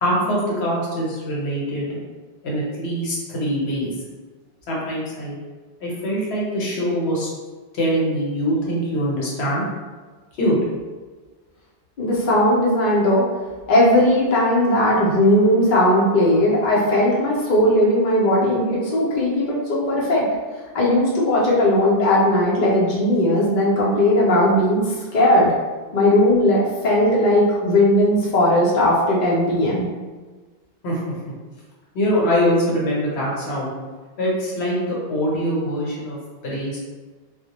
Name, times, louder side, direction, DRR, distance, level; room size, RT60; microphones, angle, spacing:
voice 1, 0.0-2.0 2.4-3.9 4.7-5.3 5.8-7.3 7.7-9.7 10.4-10.5 30.8-31.0 31.9-33.7 34.2-36.2 36.4-36.8, equal, 70° left, -5 dB, 1.0 m, -23 dB
voice 2, 12.0-13.2 13.7-20.2 20.7-25.5 25.9-29.9, left 1 dB, 55° left, -5 dB, 0.6 m, -18 dB
2.1 x 2.1 x 2.8 m, 1.4 s
omnidirectional pair, 1.2 m